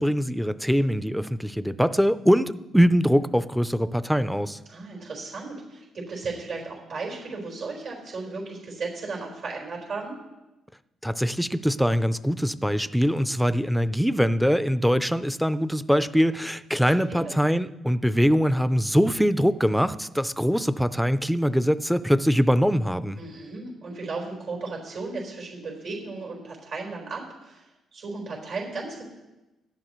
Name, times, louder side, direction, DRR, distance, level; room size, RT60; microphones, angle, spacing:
voice 1, 0.0-4.6 11.0-23.2, equal, ahead, 14 dB, 0.5 m, -23 dB
voice 2, 4.7-10.1 16.8-17.3 23.2-29.1, right 3 dB, 70° right, -1 dB, 4.4 m, -35 dB
18.0 x 11.5 x 3.1 m, 1.0 s
cardioid pair, 90°, 0 cm